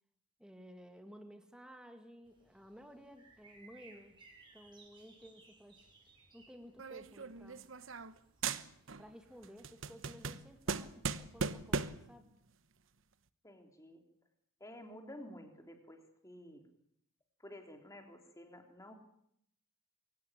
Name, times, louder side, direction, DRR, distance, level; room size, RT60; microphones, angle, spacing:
voice 1, 0.4-4.2 4.5-5.9 6.3-7.7 9.0-12.3, equal, 5° right, 6 dB, 2.1 m, -55 dB
sound 1, 2.2-11.9, right 3 dB, 20° right, 6.3 m, -64 dB
sound 2, 6.8-8.2 8.4-9.1 9.4-12.1, right 4 dB, 60° right, 1.0 m, -38 dB
voice 2, 13.4-14.0 14.6-16.6 17.4-18.9, left 1 dB, 15° left, 4 dB, 3.4 m, -52 dB
23.0 x 17.5 x 9.9 m, 0.72 s
head